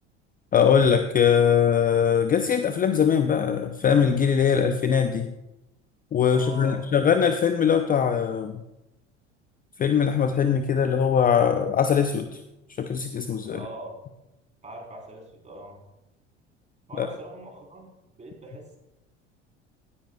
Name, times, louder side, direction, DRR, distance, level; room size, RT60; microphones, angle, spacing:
voice 1, 0.5-5.3 6.1-8.6 9.8-12.4 12.8-13.6 17.0-17.1, left 7 dB, 25° left, 8 dB, 0.6 m, -21 dB
voice 2, 6.3-6.8 13.5-14.0 14.6-15.8 16.9-18.8, right 1 dB, 20° right, 0 dB, 3.8 m, -42 dB
17.0 x 9.6 x 2.3 m, 0.92 s
figure-of-eight pair, 70°, 35 cm